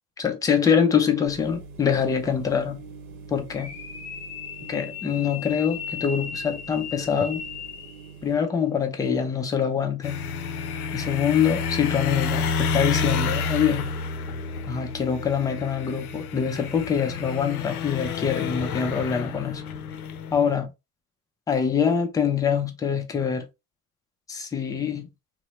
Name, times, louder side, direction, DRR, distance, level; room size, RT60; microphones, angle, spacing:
voice 1, 0.2-2.8 3.3-3.7 4.6-7.4 8.2-10.2 10.9-13.9 14.7-19.6 20.3-20.7 21.5-23.5 24.3-25.1, left 7 dB, 10° left, 0.3 m, -24 dB
sound 1, 1.3-8.3, right 4 dB, 80° right, 0.8 m, -44 dB
sound 2, 3.5-8.2, left 7 dB, 45° left, 1.1 m, -37 dB
sound 3, 10.0-20.5, left 5 dB, 90° left, 0.5 m, -29 dB
2.7 x 2.0 x 3.0 m
hypercardioid pair, 95°, 43 cm